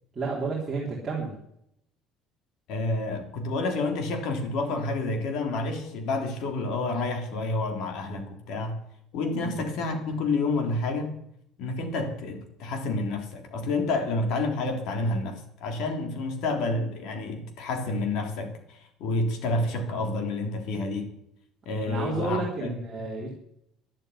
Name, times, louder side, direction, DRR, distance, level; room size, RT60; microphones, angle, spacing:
voice 1, 0.1-1.3 9.4-9.6 21.9-23.3, right 3 dB, 15° right, 3.8 m, -31 dB
voice 2, 2.7-8.8 9.1-11.1 11.6-21.1 21.7-22.7, left 2 dB, 65° left, 3.5 m, -29 dB
12.0 x 11.5 x 9.8 m
cardioid pair, 165°, 0 cm